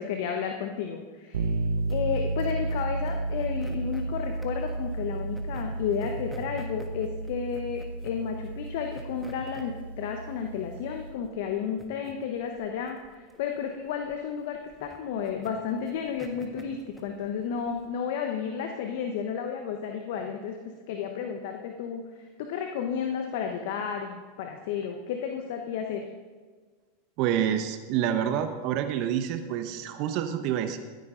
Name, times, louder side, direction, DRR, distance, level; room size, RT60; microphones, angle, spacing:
voice 1, 0.0-1.6 1.9-26.0, left 7 dB, 65° left, 4 dB, 1.0 m, -32 dB
sound 1, 1.3-11.2, right 2 dB, 80° right, 1.1 m, -33 dB
sound 2, 1.8-17.9, right 1 dB, ahead, 1.4 m, -50 dB
voice 2, 27.2-30.8, right 10 dB, 55° right, 8 dB, 0.9 m, -28 dB
15.0 x 9.3 x 3.8 m, 1.4 s
hypercardioid pair, 95°, 0 cm